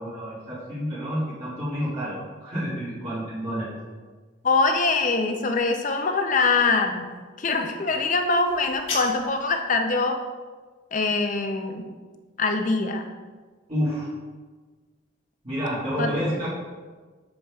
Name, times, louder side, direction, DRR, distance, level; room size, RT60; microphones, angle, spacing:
voice 1, 0.0-3.7 13.7-14.1 15.4-16.5, equal, 30° right, -11 dB, 2.0 m, -29 dB
voice 2, 4.4-7.1 7.4-10.2 10.9-11.9 12.4-13.1 16.0-16.1, left 3 dB, 40° left, 5 dB, 0.5 m, -23 dB
sound 1, 8.4-9.5, left 3 dB, 90° left, 1.6 m, -34 dB
7.1 x 6.5 x 2.4 m, 1.4 s
head